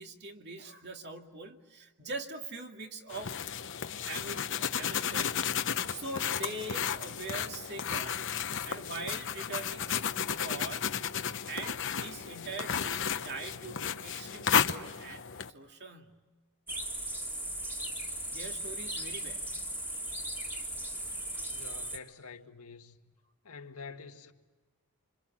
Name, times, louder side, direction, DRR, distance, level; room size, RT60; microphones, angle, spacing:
voice 1, 0.0-3.4 4.1-5.6 5.9-8.4 8.6-10.0 10.4-10.9 11.5-16.2 18.3-19.5, right 3 dB, 50° right, 2.4 m, -43 dB
sound 1, 3.1-15.5, left 7 dB, 55° left, 1.0 m, -33 dB
sound 2, 16.7-22.0, right 1 dB, 10° right, 2.5 m, -37 dB
voice 2, 21.5-23.1 23.4-24.3, left 4 dB, 80° left, 1.8 m, -47 dB
28.0 x 26.0 x 7.6 m
head